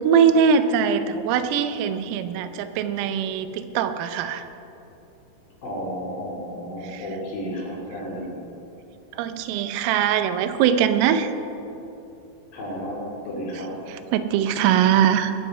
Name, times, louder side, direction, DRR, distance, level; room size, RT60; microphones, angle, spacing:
voice 1, 0.0-4.5 6.8-7.0 9.2-11.3 14.1-15.3, right 8 dB, 90° right, 10 dB, 3.4 m, -21 dB
voice 2, 5.6-8.4 12.5-13.7, equal, 50° left, -4 dB, 4.1 m, -32 dB
20.0 x 7.8 x 5.4 m, 2.9 s
omnidirectional pair, 5.8 m